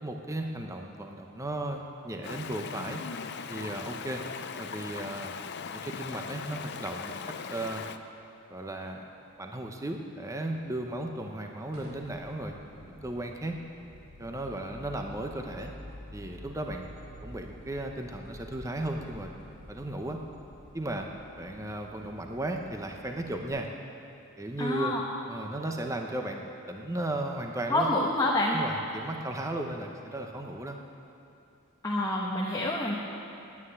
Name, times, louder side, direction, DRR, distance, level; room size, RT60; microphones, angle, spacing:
voice 1, 0.0-3.0 3.5-4.2 4.6-5.3 5.7-7.8 8.5-9.1 9.4-12.5 12.9-13.6 14.2-15.7 16.1-16.9 17.2-19.3 19.7-20.2 20.7-21.1 21.4-23.7 24.4-24.9 25.3-27.9 28.5-30.8, right 1 dB, 15° right, 3 dB, 0.7 m, -35 dB
Stream, 2.2-8.0, left 6 dB, 50° left, 0.5 m, -39 dB
sound 1, 11.7-23.5, left 1 dB, 70° right, 3.3 m, -49 dB
voice 2, 24.6-25.0 27.7-28.6 31.8-33.0, left 1 dB, 15° left, -4 dB, 1.0 m, -27 dB
9.5 x 9.1 x 9.7 m, 2.6 s
head